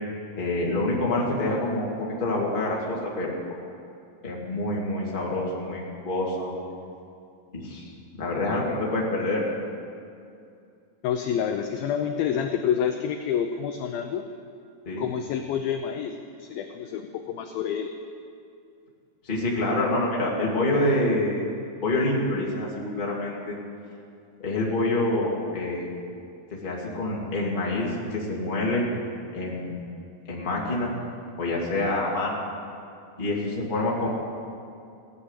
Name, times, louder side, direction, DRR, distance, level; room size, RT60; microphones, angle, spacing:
voice 1, 0.4-3.3 4.2-6.5 7.5-7.9 8.2-9.4 14.9-15.1 19.2-21.5 21.8-23.5 24.4-25.9 26.5-28.9 29.3-29.7 30.3-30.9 31.4-32.4 33.2-34.1, left 2 dB, 15° left, -4 dB, 1.8 m, -26 dB
voice 2, 11.0-14.2 15.0-16.1 16.4-17.9, left 8 dB, 80° left, 6 dB, 2.1 m, -28 dB
16.5 x 9.9 x 8.3 m, 2.4 s
omnidirectional pair, 4.9 m